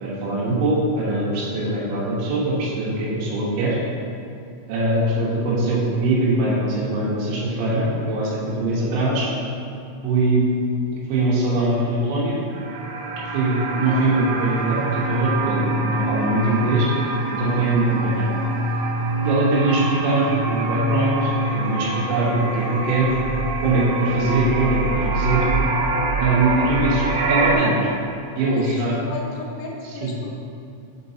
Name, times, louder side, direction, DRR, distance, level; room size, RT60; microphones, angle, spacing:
voice 1, 0.0-3.8 4.7-9.3 10.0-10.5 11.1-12.4 13.3-16.9 17.3-18.3 19.2-23.2 23.6-25.4 26.2-27.9 28.4-29.0 29.8-30.1, right 2 dB, 75° right, -6 dB, 3.2 m, -22 dB
voice 2, 5.0-5.3 28.4-30.4, left 3 dB, 85° left, -2 dB, 3.4 m, -35 dB
sound 1, 12.5-27.6, right 2 dB, 90° right, 3.4 m, -24 dB
7.6 x 4.5 x 2.7 m, 2.5 s
omnidirectional pair, 5.9 m